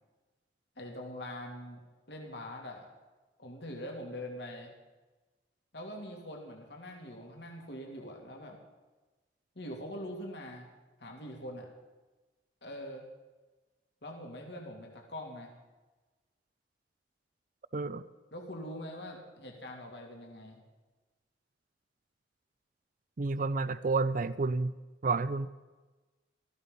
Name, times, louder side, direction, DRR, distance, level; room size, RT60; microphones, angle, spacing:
voice 1, 0.8-1.8 2.1-2.9 3.4-4.7 5.7-8.6 9.5-10.7 11.0-11.7 12.6-13.0 14.0-15.5 18.3-20.6, left 1 dB, 70° left, 1 dB, 2.8 m, -43 dB
voice 2, 17.7-18.1 23.2-24.8 25.0-25.5, right 3 dB, 45° right, 14 dB, 0.5 m, -30 dB
18.0 x 14.5 x 5.4 m, 1.2 s
head